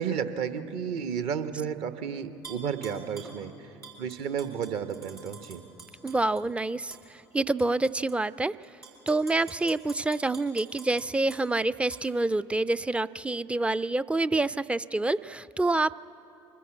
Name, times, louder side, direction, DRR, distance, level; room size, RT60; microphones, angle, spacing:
voice 1, 0.0-3.5 4.0-5.6, right 7 dB, 55° right, 10 dB, 1.0 m, -32 dB
Tap / Glass, 2.4-3.4 3.8-6.4 6.9-7.0 7.6-8.2 8.6-11.4 11.9-12.0, right 4 dB, 90° right, 4.1 m, -47 dB
voice 2, 6.0-7.0 7.3-8.5 9.1-16.0, right 2 dB, 10° right, 16 dB, 0.4 m, -27 dB
23.5 x 14.5 x 8.5 m, 2.9 s
figure-of-eight pair, 65°, 12 cm